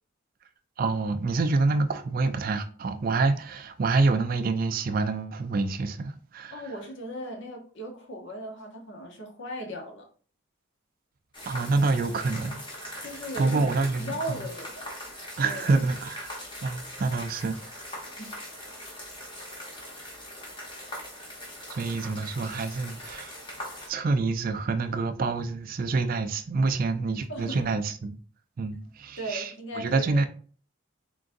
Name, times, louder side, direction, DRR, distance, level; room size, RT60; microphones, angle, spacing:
voice 1, 0.8-6.6 11.5-13.1 13.4-14.4 15.4-17.6 21.7-23.3 23.9-28.2 28.6-29.5 29.8-30.2, right 3 dB, 40° right, 0.3 m, -27 dB
voice 2, 6.5-10.1 13.0-15.0 15.4-15.8 18.2-18.5 27.3-27.7 29.2-30.3, equal, 60° left, 0.9 m, -38 dB
sound 1, 11.3-23.9, left 1 dB, 25° left, 1.0 m, -41 dB
3.8 x 3.7 x 2.5 m
head